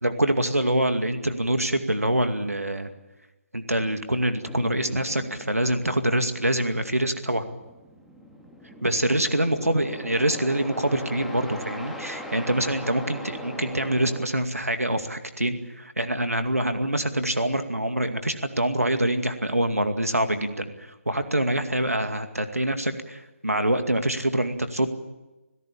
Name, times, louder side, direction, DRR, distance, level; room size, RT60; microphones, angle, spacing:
voice 1, 0.0-2.9 3.5-7.4 8.8-24.9, right 1 dB, 90° right, 8 dB, 2.3 m, -25 dB
sound 1, 4.4-14.3, equal, ahead, 2.3 m, -40 dB
27.0 x 16.5 x 8.6 m, 1.1 s
figure-of-eight pair, 145°, 8 cm